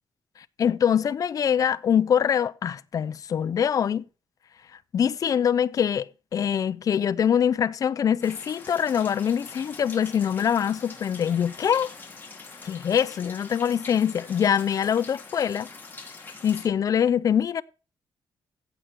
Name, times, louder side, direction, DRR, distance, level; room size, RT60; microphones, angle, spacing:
voice 1, 0.6-4.0 4.9-11.9 12.6-15.7 16.4-17.6, left 8 dB, 45° left, 0.6 m, -24 dB
sound 1, 8.2-16.7, left 4 dB, 25° left, 2.9 m, -44 dB
15.0 x 8.1 x 4.5 m
wide cardioid pair, 155°, 8 cm